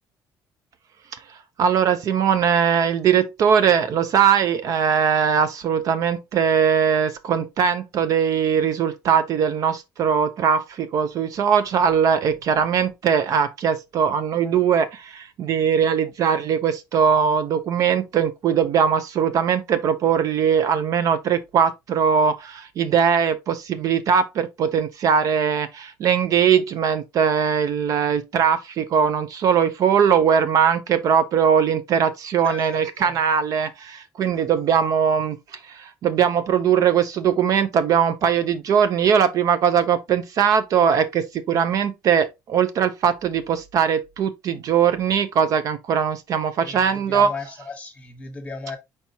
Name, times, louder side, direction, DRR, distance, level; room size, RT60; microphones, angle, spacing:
voice 1, 1.6-47.3, right 7 dB, 50° right, 0.4 m, -20 dB
voice 2, 32.4-33.1 46.6-46.8 47.1-48.8, left 4 dB, 15° left, 1.1 m, -35 dB
4.6 x 4.3 x 2.7 m
cardioid pair, 175°, 7 cm